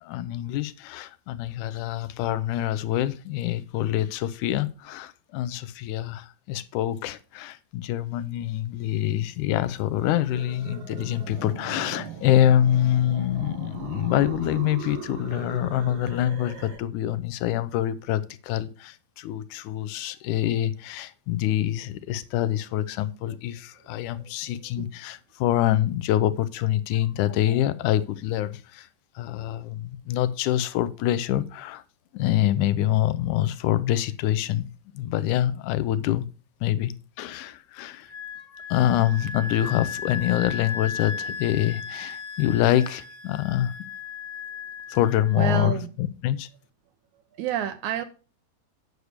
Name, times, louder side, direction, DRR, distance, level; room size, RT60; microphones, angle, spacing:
voice 1, 0.0-28.9 29.2-31.8 32.1-36.3 36.6-38.1 38.7-43.7 44.9-46.5, left 12 dB, 75° left, 2.1 m, -25 dB
sound 1, 9.9-16.8, right 6 dB, 50° right, 1.5 m, -39 dB
Wind instrument woodwind instrument, 38.1-45.5, left 5 dB, 40° left, 1.6 m, -36 dB
voice 2, 45.4-45.9 47.4-48.0, right 9 dB, 75° right, 1.9 m, -28 dB
9.4 x 6.5 x 4.9 m
omnidirectional pair, 3.8 m